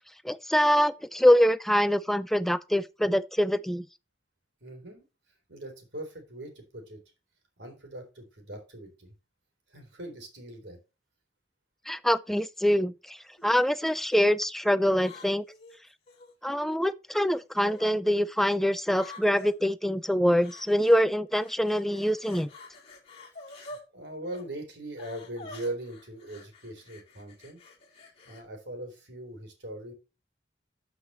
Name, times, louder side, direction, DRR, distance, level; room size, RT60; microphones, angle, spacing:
voice 1, 0.2-3.9 11.9-15.4 16.4-22.5, equal, ahead, 0.4 m, -24 dB
voice 2, 4.6-5.0 5.5-7.0 7.6-9.1 9.7-10.8 23.6-27.6 28.0-29.9, right 1 dB, 65° right, 3.8 m, -41 dB
sound 1, 12.3-12.6 13.4-13.9 14.9-16.3 17.3-17.9 18.9-19.5 20.4-21.0 21.3-23.8 24.2-24.4 25.0-28.4, left 2 dB, 35° left, 2.2 m, -48 dB
13.0 x 5.8 x 3.1 m
head